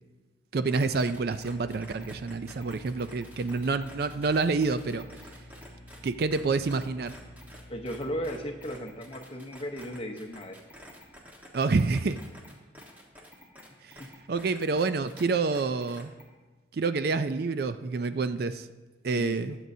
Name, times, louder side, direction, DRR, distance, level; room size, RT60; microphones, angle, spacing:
voice 1, 0.5-5.1 6.0-7.1 11.5-12.2 13.8-14.0 14.3-16.1 16.7-18.7 19.0-19.5, right 4 dB, 55° right, 11 dB, 0.4 m, -28 dB
sound 1, 0.7-15.2 15.5-16.2, equal, 10° right, 1.4 m, -49 dB
sound 2, 1.0-9.9, equal, 75° right, 2.6 m, -51 dB
voice 2, 7.7-10.6 14.0-14.1 19.1-19.4, equal, 30° left, 4 dB, 0.9 m, -36 dB
21.0 x 7.6 x 2.7 m, 1.2 s
head